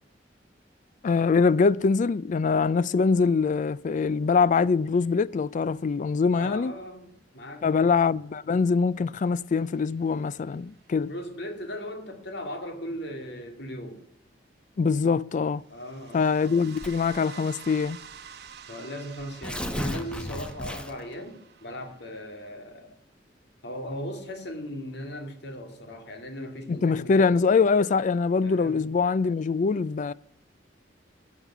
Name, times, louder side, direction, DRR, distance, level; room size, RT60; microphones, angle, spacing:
voice 1, 1.0-6.7 7.6-11.1 14.8-15.6 16.1-18.0 26.7-30.1, left 5 dB, 45° left, 0.3 m, -23 dB
voice 2, 6.3-7.9 11.1-14.0 15.7-16.2 18.7-23.0 23.6-27.3 28.4-28.8, equal, 65° left, 2.2 m, -38 dB
sound 1, 9.4-10.5 15.7-22.5, right 7 dB, 60° right, 1.0 m, -48 dB
Tearing, 16.8-17.2 18.0-18.1 18.4-18.5 19.2-21.1, equal, 5° left, 0.9 m, -34 dB
14.0 x 7.3 x 6.0 m
head